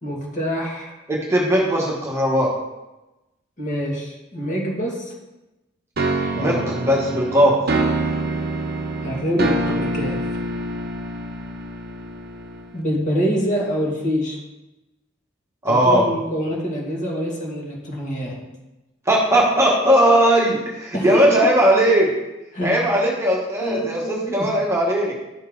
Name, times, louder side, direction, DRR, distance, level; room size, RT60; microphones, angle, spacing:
voice 1, 0.0-1.0 3.6-5.1 6.3-6.6 9.0-10.2 12.7-14.4 15.7-18.4 20.9-21.3 22.5-22.8 23.6-24.5, equal, 35° left, -2 dB, 2.1 m, -25 dB
voice 2, 1.1-2.5 6.3-7.6 15.6-16.0 19.1-22.1 22.6-25.1, right 1 dB, 15° right, -3 dB, 1.2 m, -18 dB
sound 1, 6.0-12.8, right 2 dB, 50° right, 0.8 m, -26 dB
11.0 x 5.5 x 3.9 m, 1.0 s
head